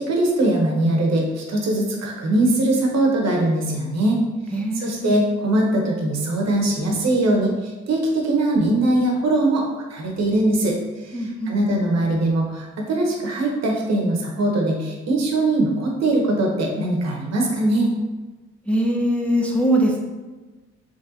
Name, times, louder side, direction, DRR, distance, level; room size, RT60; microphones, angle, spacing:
voice 1, 0.0-4.2 4.7-17.9, right 1 dB, 60° right, 0 dB, 1.0 m, -21 dB
voice 2, 4.5-5.1 11.1-11.5 18.7-20.0, right 1 dB, 5° left, -1 dB, 0.5 m, -22 dB
3.9 x 3.4 x 2.7 m, 1.2 s
cardioid pair, 90°, 30 cm